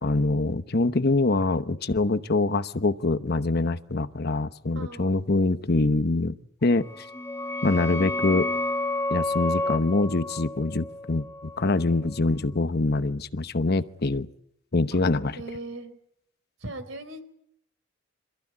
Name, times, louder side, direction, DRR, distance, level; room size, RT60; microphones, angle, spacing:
voice 1, 0.0-6.4 6.6-7.1 7.6-8.5 9.1-11.3 11.6-14.3 14.7-15.4, left 2 dB, 55° left, 11 dB, 1.0 m, -24 dB
voice 2, 4.7-5.2 15.3-15.9 16.6-17.2, right 2 dB, 65° right, 10 dB, 4.1 m, -38 dB
sound 1, 6.8-12.2, left 2 dB, 15° left, 1.4 m, -31 dB
26.5 x 15.0 x 9.8 m, 0.72 s
head